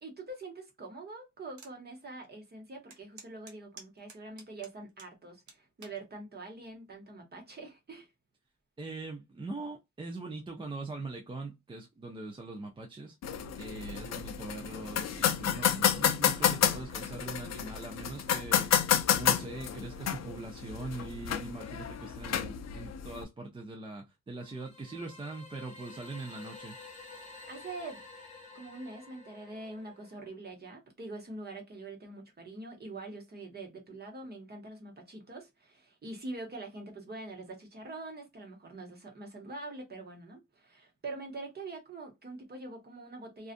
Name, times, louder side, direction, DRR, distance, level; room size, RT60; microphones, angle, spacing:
voice 1, 0.0-8.1 27.5-28.0 28.5-43.5, right 2 dB, 35° right, 0.9 m, -44 dB
sound 1, 1.6-1.8 2.2-2.3 2.9-5.1 5.5-6.0 6.7-7.0, right 5 dB, 85° right, 0.9 m, -51 dB
voice 2, 8.8-13.2 13.6-18.9 19.2-26.8, right 3 dB, 15° right, 0.4 m, -42 dB
sound 2, 13.2-23.2, left 9 dB, 65° left, 0.4 m, -30 dB
sound 3, 24.4-30.3, left 3 dB, 25° left, 1.0 m, -50 dB
2.5 x 2.3 x 2.4 m
wide cardioid pair, 175°, 29 cm